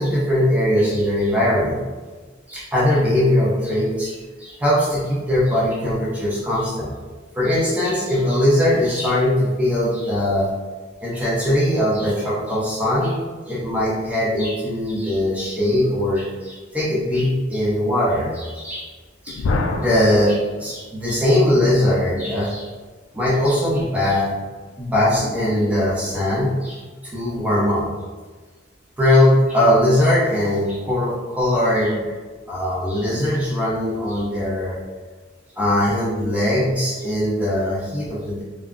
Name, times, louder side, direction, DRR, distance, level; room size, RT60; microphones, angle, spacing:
voice 1, 0.0-1.8 2.5-7.0 7.3-10.5 11.0-18.9 19.2-19.4 19.8-22.7 23.1-24.3 24.8-26.8 27.1-27.9 29.0-32.1 32.5-34.8 35.6-38.4, left 1 dB, 10° right, -8 dB, 0.7 m, -20 dB
sound 1, 19.3-21.2 24.1-26.5, left 2 dB, 85° left, 0.3 m, -30 dB
3.5 x 2.1 x 2.4 m, 1.4 s
head